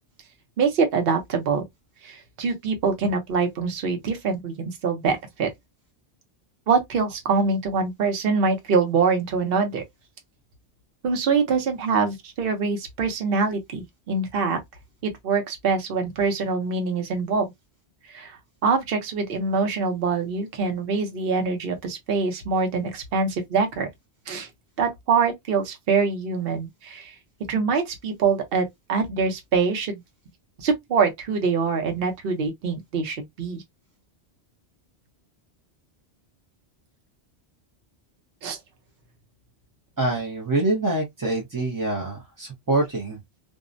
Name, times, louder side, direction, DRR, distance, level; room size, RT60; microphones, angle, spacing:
voice 1, 0.6-1.6 2.0-5.5 6.7-9.8 11.0-14.6 15.0-17.5 18.1-18.4 18.6-23.9 24.3-24.5 24.8-27.2 27.5-30.0 30.6-33.6 38.4-38.6, right 5 dB, 60° right, 0.9 m, -24 dB
voice 2, 40.0-43.2, right 2 dB, 25° right, 0.4 m, -25 dB
2.5 x 2.0 x 2.4 m
omnidirectional pair, 1.2 m